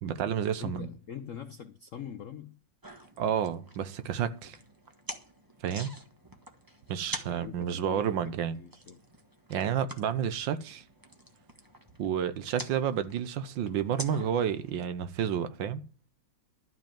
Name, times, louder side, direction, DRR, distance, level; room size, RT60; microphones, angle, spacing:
voice 1, 0.0-0.9 3.2-4.6 5.6-5.9 6.9-8.6 9.5-10.8 12.0-15.8, right 8 dB, 70° right, 1.5 m, -30 dB
voice 2, 0.6-2.6 7.2-9.0, left 8 dB, 70° left, 0.7 m, -43 dB
sound 1, 2.8-14.8, right 1 dB, 10° right, 1.2 m, -47 dB
12.5 x 5.2 x 8.8 m
omnidirectional pair, 2.2 m